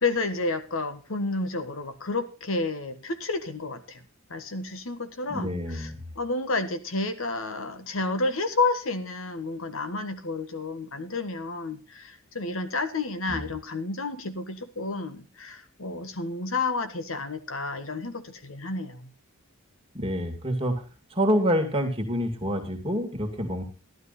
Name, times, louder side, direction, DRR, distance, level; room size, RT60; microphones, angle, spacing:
voice 1, 0.0-4.0 4.3-5.9 6.1-19.1, left 3 dB, 65° left, 10 dB, 1.4 m, -30 dB
voice 2, 5.3-6.0 13.3-13.5 19.9-20.8 21.1-23.6, equal, 25° right, 3 dB, 2.4 m, -27 dB
12.5 x 12.0 x 4.1 m, 0.34 s
head